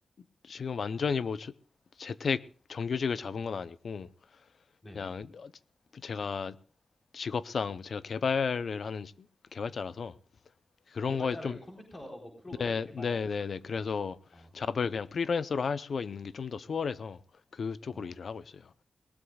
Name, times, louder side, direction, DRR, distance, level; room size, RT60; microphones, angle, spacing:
voice 1, 0.5-1.5 2.0-2.4 2.7-4.1 4.9-5.5 5.9-6.6 7.1-9.1 9.5-10.1 10.9-11.6 12.6-14.2 14.5-17.2 17.5-18.6, left 5 dB, 65° left, 0.7 m, -33 dB
voice 2, 11.0-13.3 14.3-14.5 17.9-18.2, left 1 dB, 25° left, 4.1 m, -46 dB
21.0 x 19.0 x 2.4 m
wide cardioid pair, 155°, 0 cm